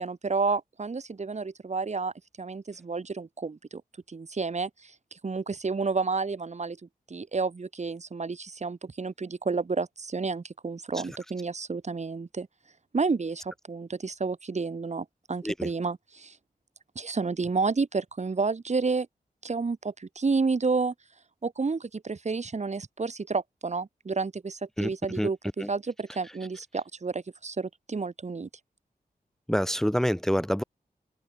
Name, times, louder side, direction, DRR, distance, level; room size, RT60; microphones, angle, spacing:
voice 1, 0.0-3.8 4.1-12.5 12.9-16.4 16.9-19.1 19.4-20.9 21.4-28.5, right 4 dB, 45° right, 2.8 m, -30 dB
voice 2, 29.5-30.6, equal, 5° left, 1.7 m, -26 dB
wide cardioid pair, 95°, 16 cm